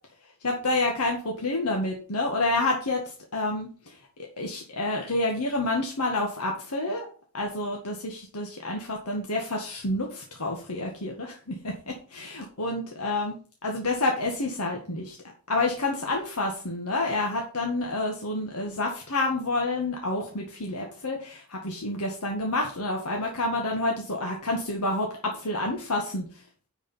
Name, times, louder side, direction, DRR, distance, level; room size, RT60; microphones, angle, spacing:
voice 1, 0.4-4.0 4.4-7.1 7.3-15.2 15.5-26.3, left 2 dB, 85° left, 1 dB, 1.8 m, -29 dB
10.0 x 5.1 x 5.6 m, 0.40 s
head